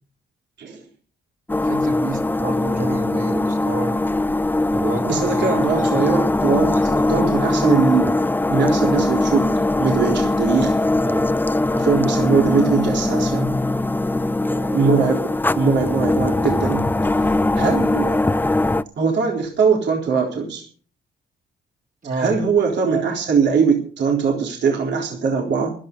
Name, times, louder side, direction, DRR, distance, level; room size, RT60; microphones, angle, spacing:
sound 1, 1.5-18.8, left 2 dB, 10° left, 0.6 m, -21 dB
voice 1, 1.6-4.0 4.7-6.1 6.6-7.2 11.0-11.3 14.4-15.1 22.0-22.3, right 3 dB, 45° right, 1 dB, 3.9 m, -30 dB
voice 2, 5.0-8.1 8.5-9.5 9.8-10.8 11.7-13.5 14.7-15.2 15.6-16.9 17.5-18.2 19.0-20.6 22.1-25.7, right 5 dB, 60° right, 0 dB, 3.9 m, -21 dB
15.5 x 12.5 x 5.4 m, 0.43 s
cardioid pair, 90°, 20 cm